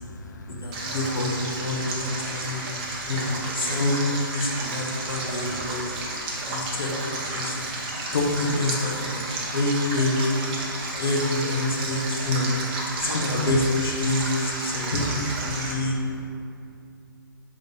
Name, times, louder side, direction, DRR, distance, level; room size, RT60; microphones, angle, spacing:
voice 1, 0.0-0.9 1.7-1.9 2.2-3.1 4.5-4.7 5.0-5.3 5.7-6.5 7.4-8.1 9.2-9.6 10.6-11.0 12.9-13.1 15.5-15.7, left 2 dB, 50° left, 2 dB, 0.9 m, -45 dB
voice 2, 0.6-2.6 3.1-4.0 4.3-5.9 6.5-6.9 7.2-7.6 8.1-9.2 9.5-10.3 11.0-12.5 13.0-15.9, left 2 dB, 85° left, -2 dB, 1.5 m, -26 dB
Stream, 0.7-15.7, right 2 dB, 20° right, 0.9 m, -32 dB
11.0 x 3.9 x 3.5 m, 2.6 s
hypercardioid pair, 160°, 12 cm